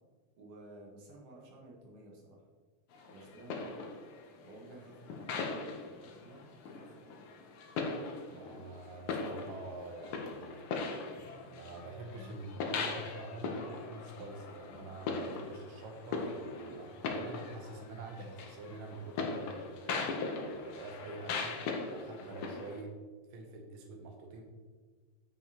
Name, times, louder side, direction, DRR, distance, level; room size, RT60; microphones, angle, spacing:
voice 1, 0.4-2.4 3.1-3.8 4.4-7.1, right 1 dB, 55° right, -3 dB, 2.3 m, -53 dB
sound 1, 2.9-22.8, left 4 dB, 75° left, 1.2 m, -40 dB
voice 2, 8.3-10.6 11.5-22.9 23.3-24.4, right 2 dB, 75° right, 2 dB, 1.2 m, -46 dB
9.0 x 5.9 x 2.8 m, 1.5 s
omnidirectional pair, 3.4 m